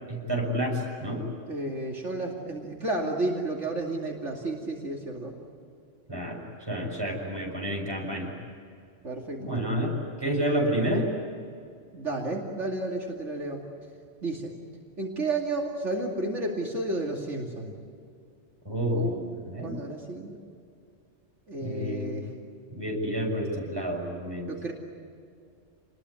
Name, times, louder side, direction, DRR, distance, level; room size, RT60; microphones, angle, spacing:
voice 1, 0.1-1.2 6.1-6.4 6.7-8.3 9.4-9.9 10.2-11.1 18.6-19.1 19.4-19.8 21.6-22.2 22.7-24.5, equal, 20° right, -1 dB, 6.8 m, -29 dB
voice 2, 1.5-5.3 9.0-9.5 11.9-13.6 14.2-14.5 15.0-17.7 18.9-20.4 21.5-22.3 24.5-24.7, right 2 dB, 65° right, -1 dB, 2.9 m, -32 dB
29.0 x 21.0 x 9.8 m, 2.4 s
omnidirectional pair, 1.3 m